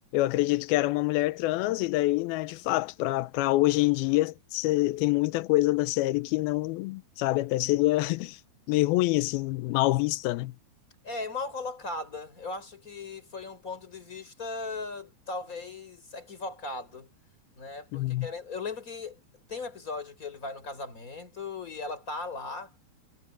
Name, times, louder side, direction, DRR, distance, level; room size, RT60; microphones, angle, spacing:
voice 1, 0.1-8.4 8.7-10.5 17.9-18.3, left 18 dB, 85° left, 2.2 m, -26 dB
voice 2, 11.0-17.1 17.6-19.2 19.5-22.7, left 3 dB, 20° left, 4.9 m, -37 dB
omnidirectional pair, 5.0 m